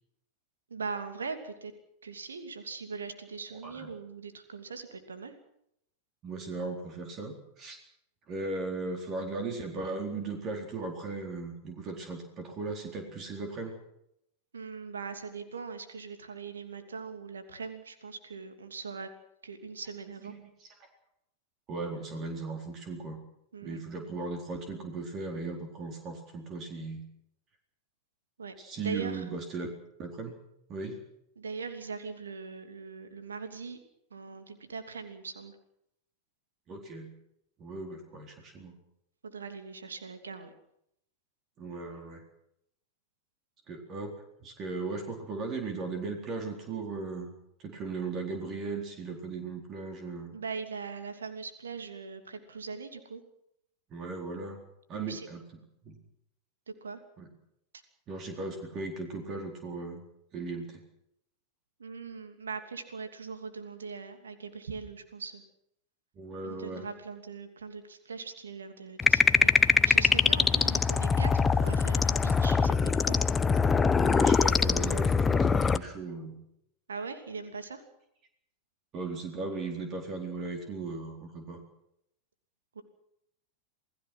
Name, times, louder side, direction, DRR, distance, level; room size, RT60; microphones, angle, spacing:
voice 1, 0.7-1.7 2.0-5.4 14.5-19.1 19.4-20.3 23.5-23.8 28.4-29.2 31.4-33.8 34.1-35.5 39.2-40.5 50.3-53.2 54.9-55.3 56.7-57.0 61.8-65.4 66.4-73.2 76.9-77.8 82.7-82.8, right 5 dB, 70° right, 8 dB, 2.9 m, -41 dB
voice 2, 6.2-7.8 8.3-13.7 20.3-20.9 21.7-23.2 23.6-27.0 28.6-29.7 30.0-30.4 30.7-31.0 36.7-37.1 37.6-38.7 41.6-42.2 43.7-44.1 44.4-47.3 47.6-50.3 53.9-54.6 54.9-55.4 55.8-56.0 57.2-57.3 58.1-60.0 60.3-60.8 66.2-66.9 74.0-76.4 78.9-81.6, right 3 dB, 30° right, 4 dB, 4.1 m, -37 dB
sound 1, 69.0-75.8, left 5 dB, 15° left, 0.9 m, -23 dB
28.0 x 18.5 x 6.2 m, 0.76 s
figure-of-eight pair, 90°, 0 cm